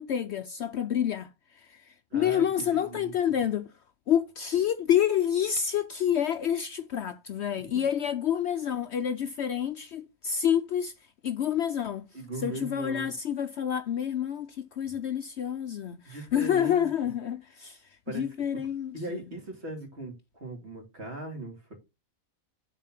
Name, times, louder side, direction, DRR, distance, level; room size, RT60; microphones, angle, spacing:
voice 1, 0.0-3.7 4.1-10.9 11.2-12.1 12.4-17.8 18.1-19.2, left 9 dB, 65° left, 0.7 m, -28 dB
voice 2, 2.1-3.1 7.7-7.9 12.1-13.1 16.1-16.9 18.1-18.2 18.9-21.8, right 1 dB, 50° right, 2.7 m, -39 dB
7.2 x 4.1 x 5.8 m
omnidirectional pair, 1.5 m